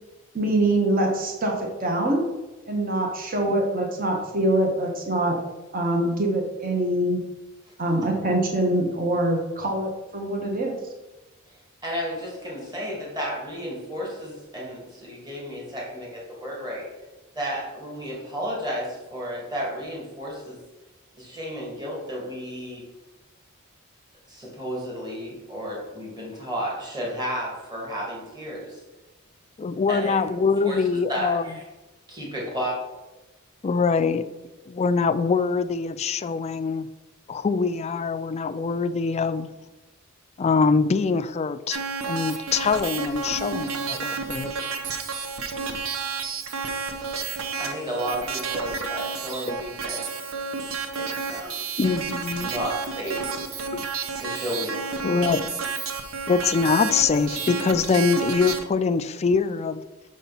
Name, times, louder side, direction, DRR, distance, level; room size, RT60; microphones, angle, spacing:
voice 1, 0.3-2.2 2.7-5.4 5.7-7.2 7.8-10.7, right 1 dB, 45° right, 1 dB, 1.1 m, -24 dB
voice 2, 11.8-16.9 17.3-20.6 21.2-22.8 24.3-28.8 29.9-30.2 30.7-30.8 31.1-31.6 32.1-32.8 47.6-50.5 50.9-51.6 52.4-53.3 54.2-55.0, equal, 20° right, -3 dB, 2.1 m, -32 dB
voice 3, 29.6-31.5 33.6-34.3 34.7-36.9 37.3-39.5 40.4-44.5 51.8-52.5 53.7-53.8 55.0-55.4 56.3-59.8, left 5 dB, 30° left, 11 dB, 0.3 m, -24 dB
sound 1, 41.7-58.6, right 5 dB, 75° right, 0.8 m, -31 dB
6.6 x 4.2 x 5.4 m, 1.1 s
head